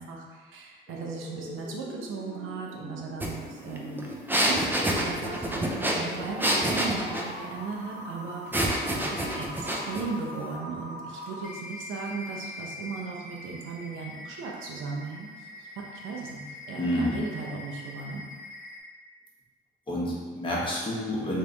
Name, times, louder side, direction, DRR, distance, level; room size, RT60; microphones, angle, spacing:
voice 1, 0.0-4.0 4.5-4.7 5.0-8.6 8.9-18.2, right 4 dB, 85° right, -1 dB, 0.8 m, -37 dB
sound 1, 0.9-18.8, left 1 dB, 45° left, 1.0 m, -42 dB
sound 2, 3.2-3.3 3.6-7.3 8.5-10.1, right 1 dB, 10° right, 0.6 m, -27 dB
voice 2, 16.7-17.2 19.9-21.4, equal, 25° left, -6 dB, 1.4 m, -29 dB
3.4 x 3.3 x 4.0 m, 1.5 s
cardioid pair, 90°, 20 cm